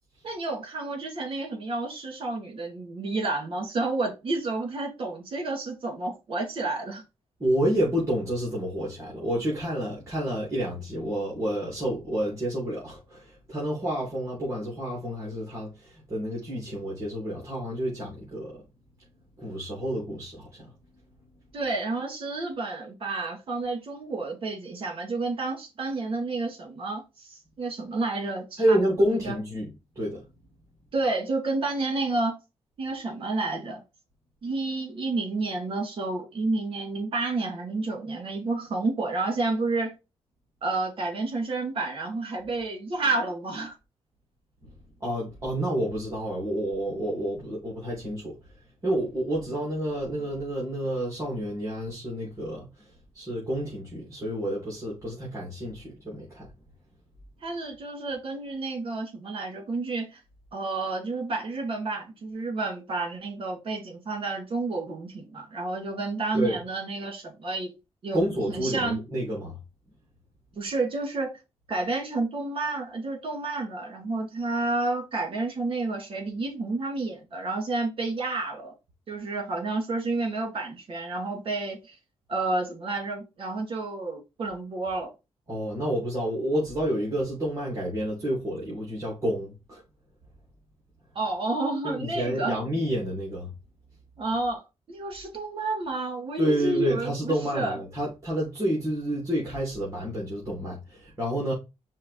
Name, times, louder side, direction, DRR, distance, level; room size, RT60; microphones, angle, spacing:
voice 1, 0.2-7.0 21.5-28.8 29.1-29.4 30.9-32.3 32.8-33.8 34.4-39.9 40.6-43.8 57.4-60.2 60.5-67.7 68.0-68.2 68.5-69.0 70.6-71.3 71.7-78.7 79.1-82.0 82.3-85.1 91.1-92.6 94.2-94.6 94.9-97.8, right 3 dB, 55° right, 2.5 m, -30 dB
voice 2, 7.4-18.6 19.4-20.7 21.2-21.4 28.6-30.2 44.6-44.7 45.0-48.3 48.8-52.9 53.1-56.5 66.3-66.6 68.1-69.6 85.5-89.8 91.8-93.5 96.4-101.5, equal, 30° right, 2.9 m, -29 dB
5.6 x 3.1 x 5.5 m
cardioid pair, 120°, 11 cm